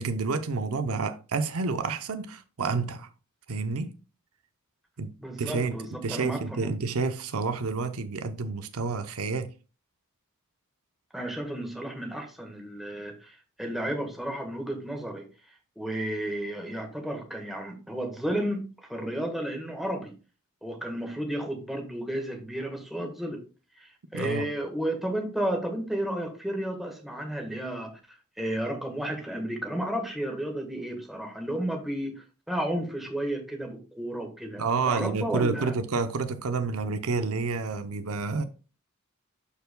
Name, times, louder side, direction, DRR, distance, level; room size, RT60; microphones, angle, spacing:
voice 1, 0.0-3.1 3.5-3.9 5.0-5.1 5.4-9.5 24.1-24.5 34.6-38.5, right 4 dB, 75° right, 0.7 m, -29 dB
voice 2, 5.2-6.7 11.1-15.3 15.8-20.1 20.6-23.4 23.8-28.0 28.4-35.7, right 1 dB, ahead, 1.4 m, -32 dB
12.0 x 4.6 x 2.2 m
head